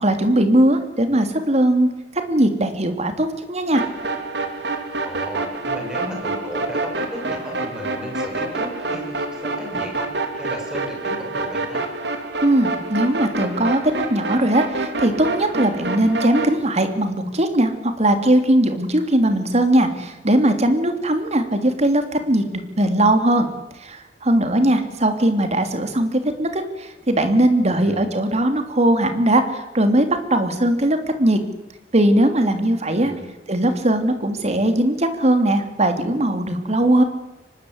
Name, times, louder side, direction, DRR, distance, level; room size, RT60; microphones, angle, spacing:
voice 1, 0.0-1.9 2.3-3.8 12.4-23.5 23.8-31.4 31.9-33.1 33.5-37.0, right 1 dB, 40° right, 7 dB, 3.0 m, -19 dB
sound 1, 3.7-16.5, right 2 dB, 70° right, 3.7 m, -27 dB
voice 2, 5.0-11.8 27.7-28.1 33.0-33.3, equal, 5° right, 0 dB, 6.7 m, -35 dB
24.0 x 20.5 x 8.1 m, 1.0 s
head